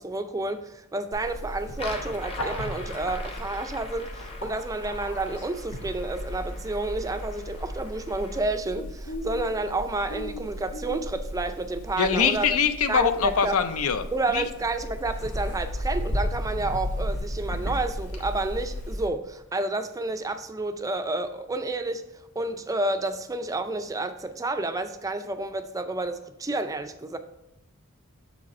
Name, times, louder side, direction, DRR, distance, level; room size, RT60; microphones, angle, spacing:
voice 1, 0.0-12.6 12.9-13.6 14.1-22.0 22.4-27.2, right 2 dB, 15° right, 8 dB, 0.4 m, -30 dB
Bird, 1.1-19.1, equal, 85° left, 1.4 m, -35 dB
sound 1, 1.7-8.5, left 3 dB, 25° left, 0.8 m, -43 dB
voice 2, 12.0-14.1 14.3-14.4, left 6 dB, 70° left, 11 dB, 0.6 m, -23 dB
7.2 x 5.0 x 4.2 m, 0.86 s
head